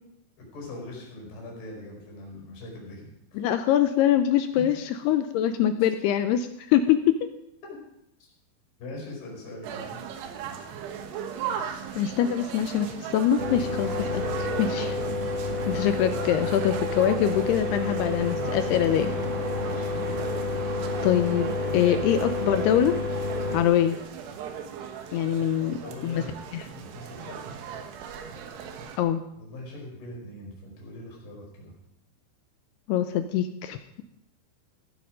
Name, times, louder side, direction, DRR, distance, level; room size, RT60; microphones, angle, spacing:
voice 1, 0.4-3.4 8.8-10.0 19.5-19.9 25.6-26.4 26.8-27.4 29.4-31.7, left 1 dB, 60° left, -1 dB, 7.2 m, -41 dB
voice 2, 3.3-7.2 12.0-15.0 15.7-19.1 21.0-23.0 23.5-24.0 25.1-25.8 26.0-26.2 26.5-26.7 29.0-29.2 32.9-34.0, left 10 dB, 80° left, 9 dB, 2.4 m, -24 dB
sound 1, 9.6-29.0, right 7 dB, 70° right, 3.1 m, -38 dB
sound 2, 13.4-23.6, left 2 dB, 50° right, 2.1 m, -29 dB
15.5 x 11.5 x 5.1 m, 0.80 s
omnidirectional pair, 5.3 m